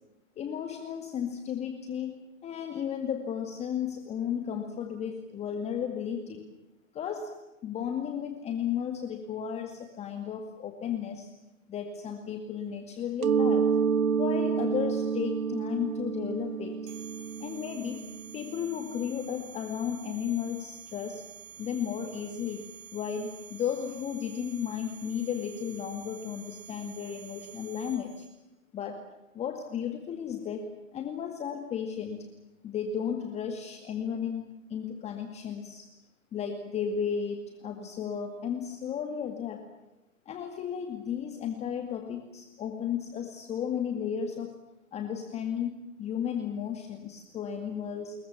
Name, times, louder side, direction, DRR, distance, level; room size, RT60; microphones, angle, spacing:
voice 1, 0.4-2.2 2.4-6.4 6.9-7.3 7.6-11.3 11.7-13.7 14.2-16.9 17.4-18.0 18.3-21.2 21.6-22.6 22.9-28.3 28.7-29.0 29.3-32.3 32.6-35.9 36.3-39.6 40.3-44.6 44.9-48.1, left 8 dB, 15° left, 5 dB, 2.2 m, -34 dB
Mallet percussion, 13.2-18.8, right 6 dB, 90° right, 1.3 m, -29 dB
sound 1, 16.9-28.3, right 8 dB, 35° right, 7.9 m, -49 dB
27.5 x 22.0 x 7.4 m, 0.96 s
hypercardioid pair, 145°, 41 cm